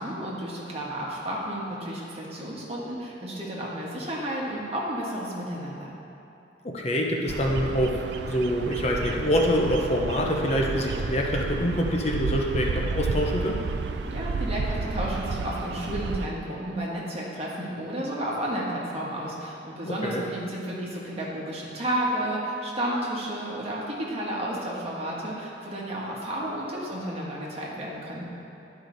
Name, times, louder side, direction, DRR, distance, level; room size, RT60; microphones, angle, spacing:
voice 1, 0.0-6.0 14.1-28.3, right 1 dB, 35° right, -5 dB, 1.4 m, -32 dB
voice 2, 6.6-13.6 19.8-20.2, equal, 35° left, 0 dB, 0.7 m, -25 dB
Bird vocalization bird call bird song, 7.3-16.3, right 4 dB, 65° right, 0.4 m, -31 dB
11.5 x 4.8 x 3.9 m, 2.8 s
head